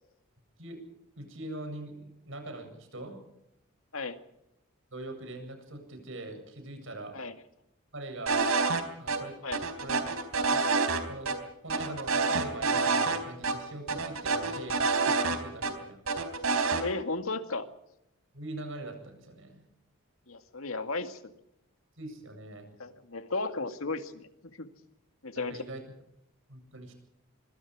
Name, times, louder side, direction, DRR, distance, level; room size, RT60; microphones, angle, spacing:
voice 1, 1.2-3.2 4.9-7.1 7.9-8.4 9.0-9.4 9.8-10.0 10.5-10.6 11.1-11.4 11.6-16.0 18.3-19.6 22.0-22.7 25.5-25.8 26.5-26.9, right 2 dB, 65° right, 6 dB, 7.9 m, -42 dB
sound 1, 8.3-8.8 9.1-9.2 9.5-11.0 11.3-11.4 11.7-13.2 13.4-13.5 13.9-15.7 16.1-16.8, right 4 dB, 85° right, 4.0 m, -27 dB
voice 2, 16.8-17.7 20.3-21.3 22.8-24.3 24.6-24.7 25.2-25.6, left 3 dB, 80° left, 8 dB, 2.1 m, -34 dB
25.0 x 24.5 x 4.9 m, 0.85 s
head